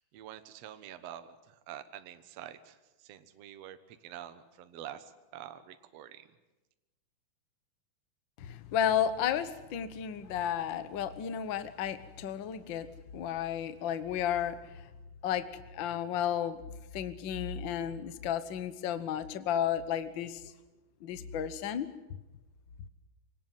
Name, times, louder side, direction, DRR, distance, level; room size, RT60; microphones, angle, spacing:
voice 1, 0.0-6.2, right 11 dB, 60° right, 10 dB, 2.0 m, -47 dB
voice 2, 8.4-12.9 13.1-14.6 15.2-15.5 15.7-16.6 16.9-20.4 21.0-21.9, left 9 dB, 80° left, 12 dB, 1.0 m, -32 dB
25.5 x 18.5 x 9.1 m, 1.1 s
omnidirectional pair, 3.9 m